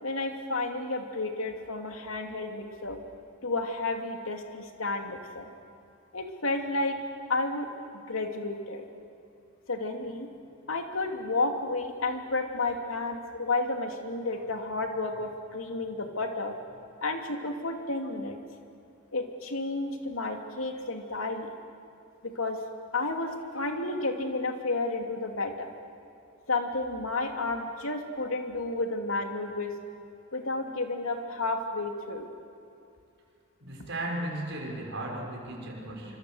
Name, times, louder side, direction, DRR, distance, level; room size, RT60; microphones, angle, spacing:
voice 1, 0.0-3.0 3.4-5.5 6.1-7.0 7.3-7.7 7.9-8.8 9.7-10.3 10.7-18.4 19.1-21.5 22.2-22.6 22.9-25.7 26.5-29.7 30.3-32.3, left 2 dB, 80° left, 4 dB, 2.8 m, -31 dB
voice 2, 33.6-36.2, right 1 dB, 60° right, -1 dB, 6.4 m, -35 dB
26.5 x 25.5 x 8.0 m, 2.5 s
head